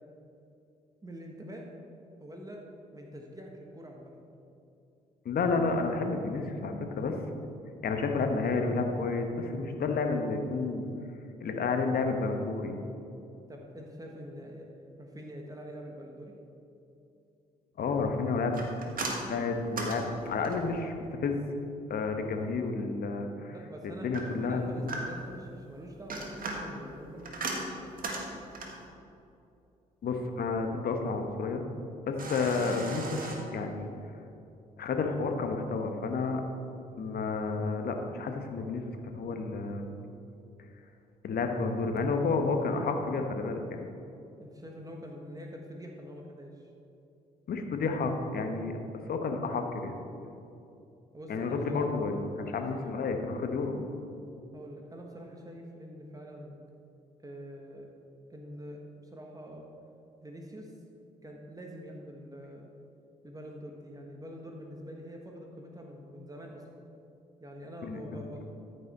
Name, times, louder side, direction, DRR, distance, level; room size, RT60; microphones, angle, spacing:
voice 1, 1.0-1.7 2.2-2.6 2.9-4.3 13.5-14.7 15.0-16.3 23.5-24.1 24.5-27.7 44.4-46.7 51.1-53.1 54.5-56.6 57.2-57.9 58.3-59.6 60.2-60.7 61.2-62.7 63.2-66.7 67.4-68.4, equal, 20° right, 1 dB, 1.4 m, -45 dB
voice 2, 5.2-7.2 7.8-10.8 11.4-12.7 17.8-18.6 19.3-21.4 21.9-23.5 23.8-24.9 30.0-31.6 32.1-33.2 33.5-33.9 34.8-36.4 37.0-39.8 41.2-43.8 47.5-48.7 49.1-49.9 51.3-53.8 67.8-68.4, left 4 dB, 55° left, 5 dB, 1.1 m, -31 dB
sound 1, 18.5-20.8 24.1-25.4 25.9-28.9 32.2-33.4, right 2 dB, 45° right, 1.7 m, -37 dB
13.5 x 5.3 x 4.2 m, 2.7 s
hypercardioid pair, 45°, 19 cm